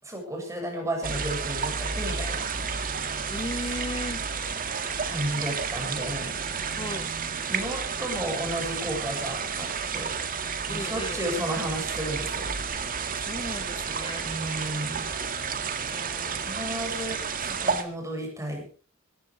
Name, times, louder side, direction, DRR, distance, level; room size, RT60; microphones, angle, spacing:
voice 1, 0.0-2.5 5.1-6.5 7.5-10.2 10.7-12.5 14.2-15.1 16.4-18.6, right 1 dB, 15° right, 7.3 m, -33 dB
sound 1, 1.0-17.8, right 5 dB, 45° right, 2.0 m, -31 dB
voice 2, 3.3-4.2 6.8-7.1 10.7-11.2 13.3-14.3 15.9-16.6, left 2 dB, 25° left, 0.9 m, -36 dB
18.0 x 15.0 x 4.8 m
head